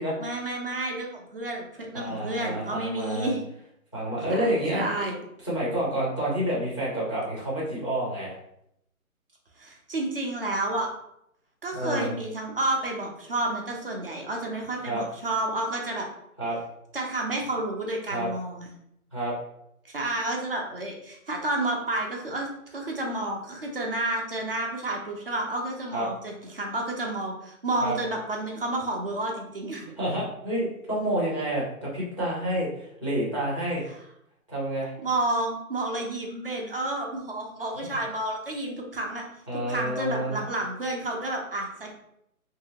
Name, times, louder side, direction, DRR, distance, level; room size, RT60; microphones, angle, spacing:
voice 1, 0.2-3.4 4.3-5.2 9.6-10.9 11.6-16.1 16.9-18.7 19.8-29.9 33.9-34.0 35.0-39.2 39.5-42.0, right 2 dB, 40° right, 0 dB, 0.6 m, -30 dB
voice 2, 1.9-3.3 3.9-4.8 5.4-8.4 11.7-12.1 14.9-15.0 16.4-16.6 18.1-18.3 19.1-19.3 25.9-26.1 27.8-28.0 30.0-33.8 34.5-34.9 39.5-40.4, right 1 dB, 20° left, -7 dB, 0.5 m, -29 dB
2.8 x 2.7 x 2.8 m, 0.76 s
hypercardioid pair, 165°, 44 cm